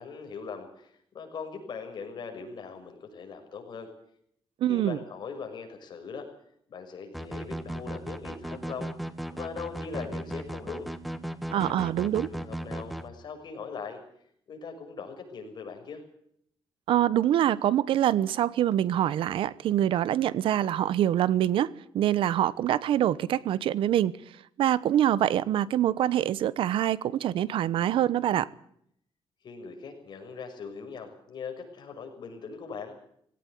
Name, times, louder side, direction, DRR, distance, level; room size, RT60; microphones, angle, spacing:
voice 1, 0.0-3.9 4.7-6.3 6.7-8.9 9.3-10.9 11.5-14.0 14.5-16.0 29.4-32.9, left 5 dB, 55° left, 6.4 m, -40 dB
voice 2, 4.6-5.0 11.5-12.3 16.9-21.7 21.9-24.1 24.6-28.5, right 11 dB, 90° right, 0.9 m, -25 dB
sound 1, 7.1-13.1, right 1 dB, ahead, 1.4 m, -36 dB
19.0 x 17.5 x 9.4 m
cardioid pair, 120°, 9 cm